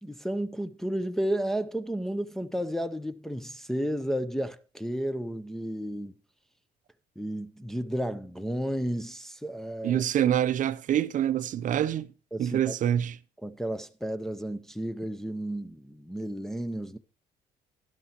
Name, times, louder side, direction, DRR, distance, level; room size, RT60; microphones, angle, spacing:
voice 1, 0.0-6.1 7.2-10.0 12.3-12.7 13.4-17.0, equal, ahead, 0.4 m, -32 dB
voice 2, 9.8-12.1 12.4-13.2, right 10 dB, 50° right, 0.5 m, -26 dB
12.0 x 10.5 x 2.8 m
cardioid pair, 110°, 17 cm